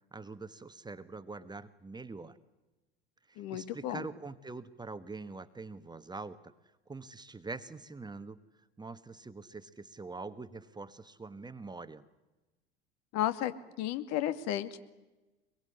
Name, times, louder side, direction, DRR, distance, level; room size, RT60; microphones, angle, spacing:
voice 1, 0.1-2.4 3.3-6.5 6.9-8.4 8.8-12.1, right 3 dB, 15° right, 13 dB, 1.4 m, -44 dB
voice 2, 3.4-4.0 13.1-13.5 13.8-14.8, left 12 dB, 55° left, 10 dB, 2.4 m, -33 dB
25.0 x 22.5 x 10.0 m, 1.1 s
hypercardioid pair, 75°, 31 cm